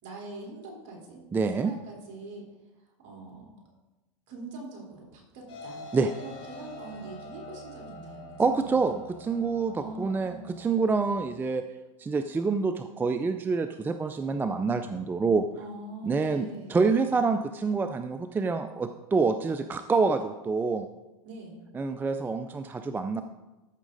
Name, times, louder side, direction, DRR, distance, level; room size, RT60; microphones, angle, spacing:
voice 1, 0.0-1.2 1.5-2.5 3.0-3.5 4.3-8.8 9.8-10.5 15.6-16.8 21.2-21.6, right 2 dB, 50° right, -1 dB, 3.7 m, -43 dB
voice 2, 1.3-1.7 5.9-6.1 8.4-11.6 12.0-15.4 16.0-20.9 21.7-23.2, right 4 dB, 10° right, 8 dB, 0.4 m, -27 dB
sound 1, 5.5-11.1, left 1 dB, 30° left, 2.9 m, -45 dB
13.5 x 6.2 x 3.9 m, 1.1 s
supercardioid pair, 120°, 17 cm